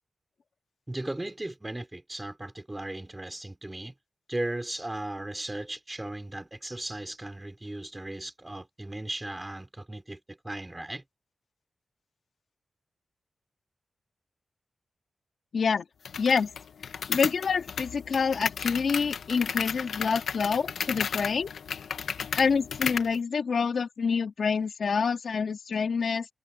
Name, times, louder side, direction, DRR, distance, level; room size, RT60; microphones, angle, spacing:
voice 1, 0.9-3.9 4.3-11.0, right 1 dB, 20° right, 4.7 m, -37 dB
voice 2, 15.5-15.9 16.2-16.5 17.1-21.5 22.3-26.3, left 5 dB, 70° left, 2.7 m, -27 dB
sound 1, 16.1-23.2, left 6 dB, 90° left, 1.5 m, -34 dB
cardioid pair, 70°, 0 cm